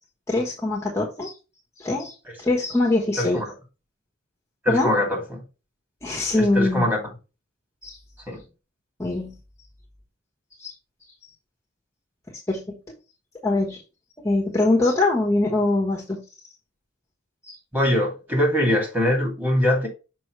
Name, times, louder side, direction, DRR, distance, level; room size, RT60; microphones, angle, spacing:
voice 1, 0.3-1.3 1.8-2.1 2.4-3.4 4.7-4.9 6.0-6.9 7.8-8.0 9.0-9.3 10.6-10.7 12.5-12.8 13.4-13.8 14.2-16.2 17.4-17.5, left 2 dB, 15° left, 1.2 m, -23 dB
voice 2, 3.2-3.5 4.6-5.4 6.3-7.0 8.3-8.4 17.7-19.9, left 1 dB, 10° right, 2.4 m, -23 dB
6.2 x 5.6 x 3.1 m
head